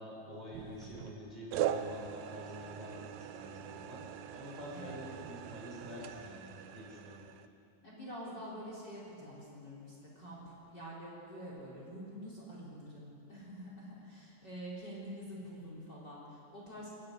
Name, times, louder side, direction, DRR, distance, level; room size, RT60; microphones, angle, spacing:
voice 1, 0.0-7.3, left 1 dB, 10° right, -4 dB, 4.7 m, -47 dB
sound 1, 0.5-1.2 1.5-7.5, right 10 dB, 80° right, 2.5 m, -41 dB
voice 2, 7.8-16.9, equal, 30° left, -5 dB, 4.6 m, -47 dB
29.5 x 10.5 x 9.7 m, 2.8 s
omnidirectional pair, 4.1 m